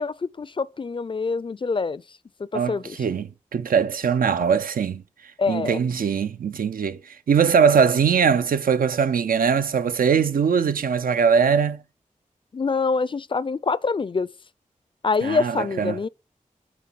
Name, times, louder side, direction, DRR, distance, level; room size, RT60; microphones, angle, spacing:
voice 1, 0.0-2.0 2.4-3.0 5.4-5.8 12.5-14.3 15.0-16.1, left 4 dB, 35° left, 0.3 m, -25 dB
voice 2, 2.5-5.0 5.5-11.8 15.2-16.0, right 6 dB, 90° right, 0.5 m, -21 dB
7.7 x 3.0 x 6.0 m
cardioid pair, 50°, 14 cm